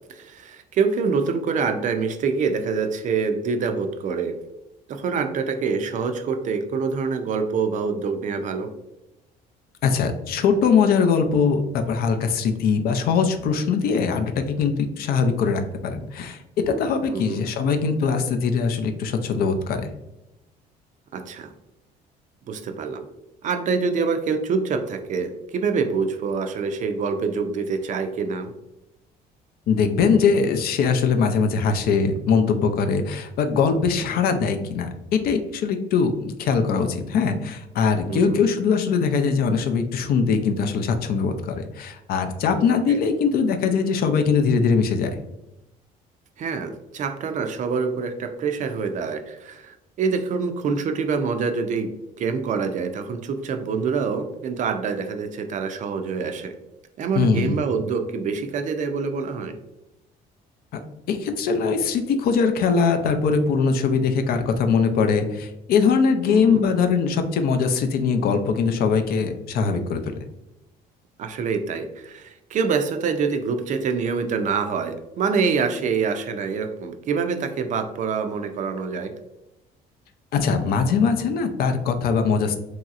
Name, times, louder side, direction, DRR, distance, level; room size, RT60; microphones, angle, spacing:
voice 1, 0.1-4.3 4.9-8.7 17.1-17.4 21.1-21.5 22.5-23.0 23.4-28.5 38.1-38.4 42.9-43.0 46.4-51.9 52.2-56.5 57.0-59.6 66.3-66.7 71.2-79.1, right 5 dB, 50° right, 7 dB, 0.4 m, -26 dB
voice 2, 9.8-16.4 16.7-19.9 29.7-45.2 57.1-57.6 60.7-60.8 61.1-70.0 80.3-82.6, left 5 dB, 65° left, 6 dB, 0.4 m, -21 dB
3.0 x 2.7 x 2.4 m, 0.92 s
cardioid pair, 110°, 17 cm